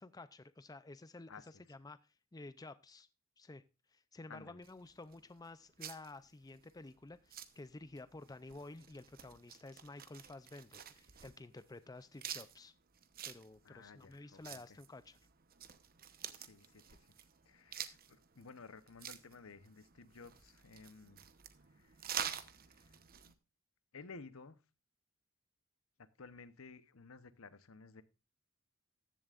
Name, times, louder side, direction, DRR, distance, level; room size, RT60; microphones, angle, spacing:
voice 1, 0.0-3.1 3.4-3.6 3.9-12.7 13.2-15.2, left 2 dB, 15° left, 0.5 m, -52 dB
voice 2, 4.3-4.6 13.6-14.8 16.3-21.2 21.7-22.1 22.7-23.4 23.9-24.6 26.0-28.0, left 4 dB, 70° left, 0.9 m, -55 dB
sound 1, 4.6-23.3, right 9 dB, 45° right, 1.0 m, -49 dB
15.0 x 11.0 x 2.5 m
head